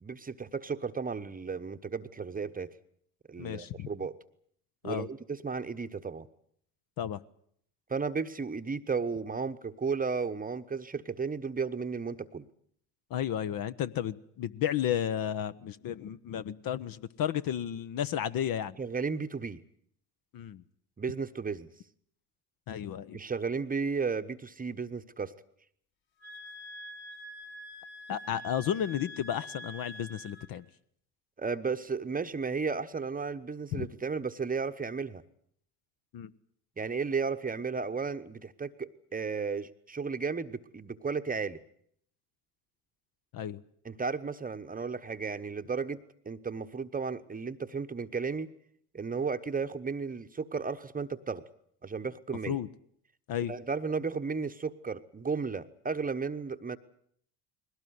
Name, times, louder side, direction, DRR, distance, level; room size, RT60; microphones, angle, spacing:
voice 1, 0.0-2.7 3.3-4.1 4.8-6.3 7.9-12.5 18.8-19.6 21.0-21.7 23.1-25.3 31.4-35.2 36.8-41.6 43.8-48.5 48.9-51.4 51.8-52.6 53.5-56.8, right 5 dB, 15° right, 9 dB, 1.1 m, -34 dB
voice 2, 3.4-3.9 4.8-5.1 7.0-7.2 13.1-18.8 20.3-20.6 22.7-23.2 28.1-30.7 33.7-33.9 36.1-36.3 43.3-43.6 52.5-52.7 53.3-53.5, left 10 dB, 45° left, 13 dB, 1.0 m, -33 dB
sound 1, 26.2-30.5, equal, 60° left, 5.3 m, -46 dB
21.0 x 18.0 x 9.5 m, 0.67 s
hypercardioid pair, 70°, 50 cm